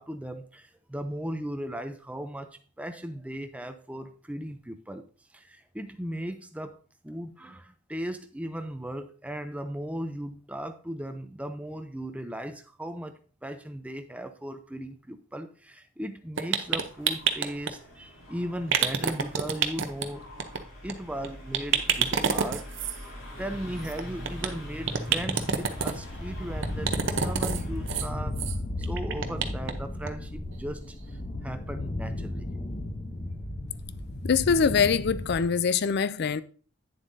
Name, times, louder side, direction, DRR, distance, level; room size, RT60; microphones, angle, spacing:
voice 1, 0.0-5.0 5.3-6.8 7.0-20.3 20.8-22.7 23.0-28.5 28.8-31.0 31.4-32.5, equal, 5° right, 0.5 m, -37 dB
sound 1, 16.4-17.7 18.7-20.0 20.4-20.6 20.9-21.0 21.2-21.3 21.5-23.0 23.8-24.5 24.8-25.9 26.6-27.6 27.9-28.1 28.4-28.6 28.8-29.7 30.0-30.1 30.5-30.6, right 7 dB, 55° right, 0.7 m, -27 dB
sound 2, 16.6-28.1, left 1 dB, 65° left, 2.8 m, -45 dB
sound 3, 25.1-35.5, left 1 dB, 30° left, 0.8 m, -35 dB
voice 2, 34.2-36.4, left 6 dB, 50° left, 0.4 m, -23 dB
9.4 x 7.1 x 2.7 m
head